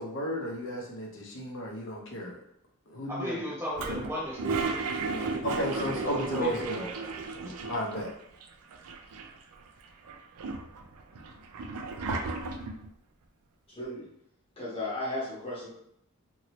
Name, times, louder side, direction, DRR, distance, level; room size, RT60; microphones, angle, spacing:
voice 1, 0.0-2.4 2.9-3.4 5.4-6.9 7.7-8.1, equal, 60° left, -2 dB, 0.8 m, -34 dB
voice 2, 3.1-7.1 7.4-7.7, equal, 10° right, -7 dB, 0.7 m, -37 dB
Toilet flush, 3.8-8.1 8.4-8.5 8.7-9.5 10.1-12.9, right 3 dB, 80° right, 0.4 m, -34 dB
voice 3, 13.7-14.1 14.6-15.7, left 1 dB, 25° left, -7 dB, 1.1 m, -35 dB
2.8 x 2.7 x 3.0 m, 0.75 s
head